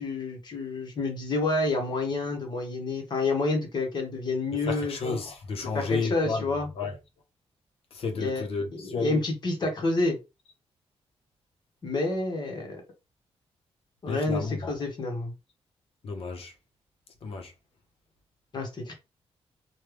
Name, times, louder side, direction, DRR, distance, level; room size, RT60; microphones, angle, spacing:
voice 1, 0.0-4.9 5.7-6.7 8.2-8.5 8.7-10.2 11.8-12.8 14.0-15.3 18.5-18.9, left 2 dB, 45° left, 1.2 m, -29 dB
voice 2, 4.7-6.4 6.8-6.9 7.9-9.2 14.1-14.7 16.0-16.5 17.2-17.5, left 4 dB, 60° left, 0.9 m, -32 dB
3.2 x 2.3 x 3.3 m
wide cardioid pair, 140°, 11 cm